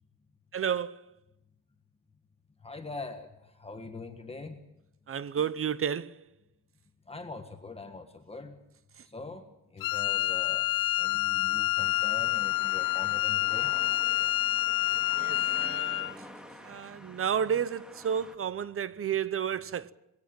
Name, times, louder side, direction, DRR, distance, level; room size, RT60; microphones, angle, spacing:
voice 1, 0.5-1.1 5.1-6.2 9.0-9.1 15.1-16.3 16.6-19.9, right 8 dB, 35° right, 0.8 m, -32 dB
voice 2, 2.6-3.3 3.6-4.6 7.1-8.5 9.1-9.4 9.7-10.7 11.0-13.7, left 3 dB, 15° left, 1.6 m, -42 dB
Wind instrument woodwind instrument, 9.8-16.1, left 16 dB, 65° left, 0.7 m, -28 dB
sound 1, 11.8-18.4, equal, ahead, 2.1 m, -49 dB
21.5 x 17.0 x 8.9 m
cardioid pair, 140°, 36 cm